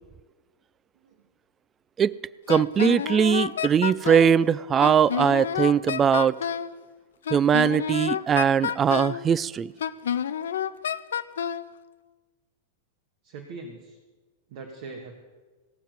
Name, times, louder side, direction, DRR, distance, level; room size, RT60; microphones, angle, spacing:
Wind instrument woodwind instrument, 2.5-4.4 4.8-6.7 7.3-9.2 9.8-11.7, left 8 dB, 65° left, 0.5 m, -29 dB
voice 1, 2.5-6.4 7.3-9.7, right 8 dB, 25° right, 19 dB, 0.3 m, -21 dB
voice 2, 13.2-14.0 14.5-15.1, right 3 dB, 50° right, 2 dB, 1.6 m, -41 dB
16.5 x 7.3 x 6.9 m, 1.3 s
figure-of-eight pair, 95°, 0 cm